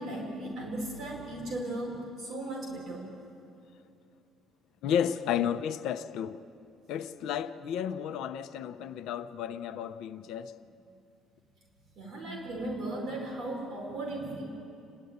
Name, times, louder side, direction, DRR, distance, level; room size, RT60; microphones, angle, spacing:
voice 1, 0.0-3.0 12.0-14.4, right 1 dB, 45° right, 4.8 m, -36 dB
voice 2, 4.8-6.4 6.9-10.6, left 9 dB, 70° left, 0.8 m, -32 dB
29.5 x 12.0 x 9.6 m
cardioid pair, 165°, 0 cm